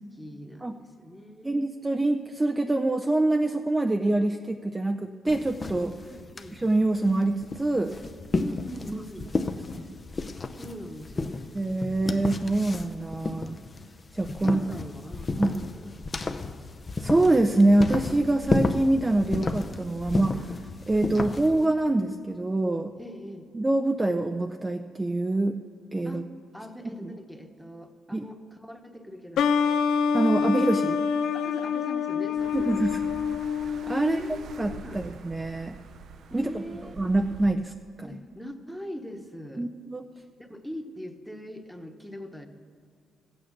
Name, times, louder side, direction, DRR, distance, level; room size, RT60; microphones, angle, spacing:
voice 1, 0.2-1.7 6.1-6.7 8.4-9.3 10.5-11.4 14.4-16.0 23.0-23.5 26.0-26.2 26.5-29.5 31.3-33.2 34.0-35.1 36.3-37.2 38.0-39.7 40.4-42.5, equal, ahead, 6 dB, 1.1 m, -42 dB
voice 2, 1.4-5.9 6.5-7.9 8.9-9.0 9.7-9.9 11.5-13.6 14.1-14.7 15.4-15.6 17.0-20.5 20.9-22.9 23.5-25.6 25.9-26.2 27.0-27.1 28.1-28.2 30.1-31.0 32.5-33.0 33.8-34.2 34.6-35.8 36.3-36.6 37.0-37.7 39.6-40.0, right 2 dB, 15° right, 6 dB, 0.5 m, -25 dB
sound 1, 5.3-21.7, left 3 dB, 30° left, 0.6 m, -32 dB
sound 2, 29.4-34.8, left 6 dB, 75° left, 0.6 m, -26 dB
sound 3, 32.4-37.6, right 7 dB, 60° right, 0.6 m, -45 dB
15.0 x 8.7 x 6.7 m, 2.2 s
cardioid pair, 90°, 0 cm